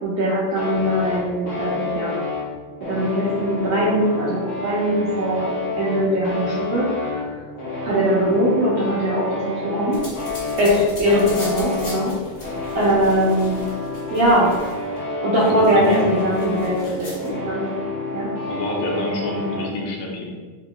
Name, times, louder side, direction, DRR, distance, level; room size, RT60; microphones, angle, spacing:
voice 1, 0.0-2.2 2.8-5.5 5.8-7.2 7.8-10.0 10.6-12.1 12.7-13.6 14.1-14.5 15.2-17.6 18.1-18.3, equal, 75° right, -7 dB, 1.6 m, -21 dB
sound 1, 0.6-19.7, left 2 dB, 60° left, 2.4 m, -29 dB
sound 2, 9.9-15.0 15.3-17.3, left 1 dB, 40° left, 1.6 m, -39 dB
voice 2, 15.4-16.1 17.6-17.8 18.4-20.3, left 2 dB, 85° left, -1 dB, 2.4 m, -26 dB
7.1 x 2.8 x 2.3 m, 1.4 s
omnidirectional pair, 3.9 m